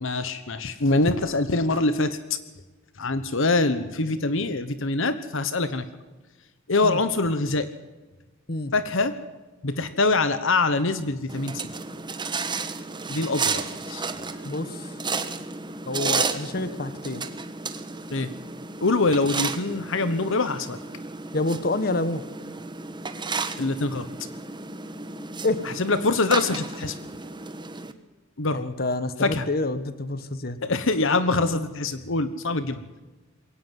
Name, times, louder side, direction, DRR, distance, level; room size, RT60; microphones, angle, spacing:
voice 1, 0.0-2.2 3.0-5.8 6.7-7.7 8.7-9.1 9.6-11.6 13.1-14.0 18.1-18.3 18.8-20.8 23.6-24.1 25.8-26.9 28.4-28.6 29.2-29.4 30.6-32.8, left 3 dB, 65° left, 12 dB, 1.2 m, -24 dB
sound 1, 11.3-27.9, right 4 dB, 20° right, 1.3 m, -32 dB
voice 2, 14.4-14.9 15.9-17.2 21.3-22.2 25.4-25.6 28.5-30.6 31.5-31.6, left 2 dB, 45° left, 13 dB, 1.4 m, -28 dB
22.5 x 17.5 x 7.7 m, 1.2 s
head